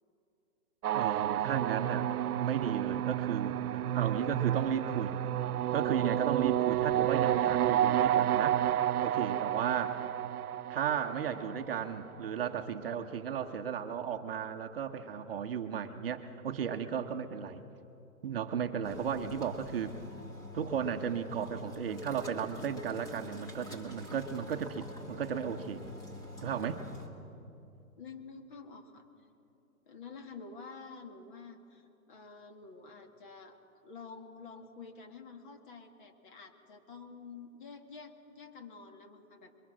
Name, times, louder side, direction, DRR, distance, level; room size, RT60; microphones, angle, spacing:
sound 1, 0.8-12.0, right 12 dB, 80° right, 0.5 m, -30 dB
voice 1, 0.9-2.1 2.4-5.2 5.7-8.6 9.0-10.0 10.7-17.6 18.2-20.0 20.5-25.8 26.4-26.8, right 7 dB, 40° right, 6 dB, 1.0 m, -35 dB
sound 2, 18.8-27.1, left 1 dB, 10° left, 1.4 m, -46 dB
voice 2, 28.0-29.1 29.9-33.6 33.8-39.6, left 4 dB, 35° left, 4 dB, 1.9 m, -49 dB
27.0 x 22.5 x 6.3 m, 2.7 s
hypercardioid pair, 160°, 44 cm